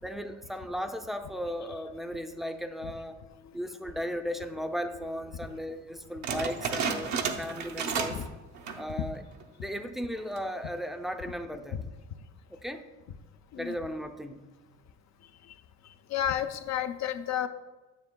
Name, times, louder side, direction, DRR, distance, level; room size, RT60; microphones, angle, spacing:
voice 1, 0.0-3.2 3.5-8.2 8.8-9.2 9.6-11.9 12.5-12.8 13.6-14.6, equal, ahead, 6 dB, 0.5 m, -36 dB
sound 1, 6.2-8.3 8.6-8.9 9.4-9.5 10.2-10.6, right 5 dB, 70° right, 0.7 m, -32 dB
voice 2, 16.1-17.5, left 10 dB, 65° left, 9 dB, 0.5 m, -31 dB
9.6 x 6.8 x 2.2 m, 1.2 s
cardioid pair, 90°, 30 cm